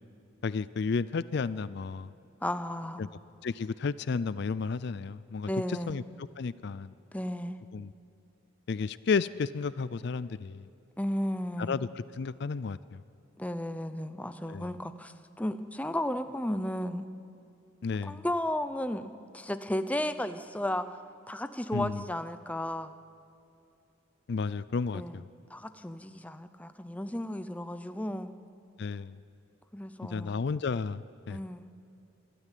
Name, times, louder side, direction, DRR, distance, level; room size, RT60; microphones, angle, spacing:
voice 1, 0.4-2.1 3.0-3.1 3.4-6.0 6.4-6.9 7.7-7.9 8.7-10.6 11.6-13.0 14.5-14.7 17.8-18.2 21.7-22.0 24.3-25.2 28.8-29.2 30.0-31.4, left 5 dB, 55° left, 17 dB, 0.4 m, -32 dB
voice 2, 2.4-3.0 5.5-6.0 7.1-7.6 11.0-11.8 13.4-17.1 18.0-20.9 21.3-22.9 24.9-25.2 25.5-28.3 29.7-30.4 31.3-31.7, left 1 dB, 5° left, 10 dB, 0.6 m, -34 dB
25.5 x 13.5 x 9.2 m, 2.6 s
head